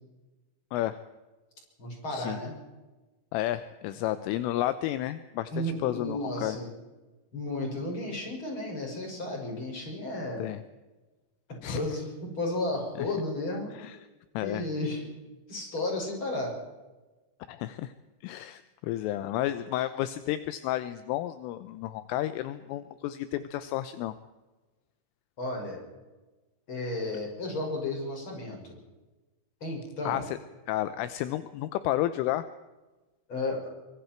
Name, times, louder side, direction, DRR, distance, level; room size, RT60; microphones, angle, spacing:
voice 1, 1.8-2.5 5.5-6.7 7.3-10.4 11.6-13.7 14.4-15.1 15.5-16.5 25.4-25.8 26.7-28.7 29.6-30.2 33.3-33.6, left 2 dB, 25° left, 0 dB, 6.5 m, -33 dB
voice 2, 3.3-6.6 10.4-10.6 11.6-11.8 13.0-13.1 13.7-14.0 14.3-14.6 17.5-17.9 18.2-24.1 30.1-30.4 30.7-32.5, left 14 dB, 80° left, 12 dB, 3.2 m, -31 dB
24.5 x 24.0 x 4.5 m, 1.2 s
omnidirectional pair, 5.9 m